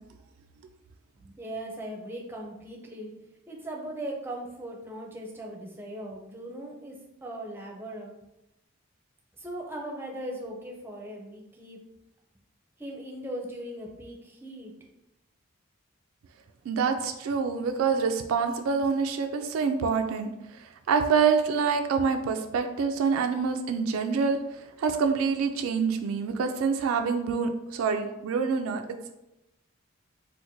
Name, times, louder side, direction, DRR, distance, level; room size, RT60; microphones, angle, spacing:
voice 1, 1.2-3.1 3.5-8.2 9.4-11.8 12.8-14.7, right 1 dB, 10° right, -1 dB, 0.5 m, -39 dB
voice 2, 16.7-28.8, right 5 dB, 80° right, 6 dB, 0.3 m, -26 dB
4.3 x 2.1 x 2.6 m, 0.91 s
head